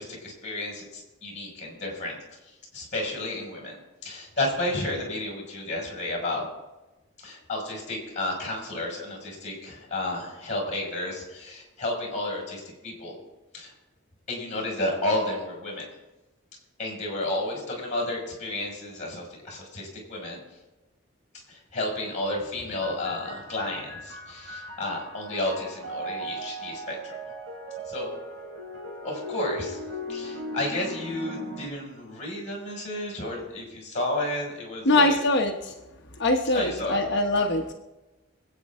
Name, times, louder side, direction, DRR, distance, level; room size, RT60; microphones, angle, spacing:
voice 1, 0.0-2.2 2.5-6.5 7.2-13.2 13.5-13.7 14.3-15.9 16.8-20.4 21.5-27.1 27.9-28.1 29.0-29.8 30.1-35.2 36.5-37.0, left 1 dB, 35° left, -3 dB, 5.7 m, -32 dB
sound 1, 22.8-31.7, right 1 dB, 80° right, 3.8 m, -38 dB
voice 2, 34.8-35.7 36.2-37.7, left 2 dB, 60° left, 1 dB, 1.1 m, -23 dB
26.0 x 8.8 x 3.7 m, 1.1 s
head